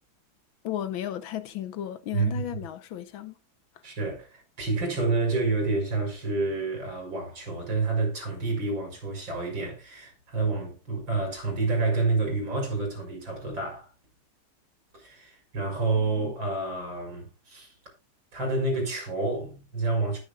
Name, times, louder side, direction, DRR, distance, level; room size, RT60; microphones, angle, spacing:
voice 1, 0.6-3.4 16.0-16.3, left 11 dB, 90° left, 1.8 m, -34 dB
voice 2, 2.1-2.4 3.8-13.9 14.9-17.7 18.3-20.2, right 3 dB, 75° right, 5.9 m, -29 dB
19.5 x 6.7 x 2.4 m
omnidirectional pair, 2.1 m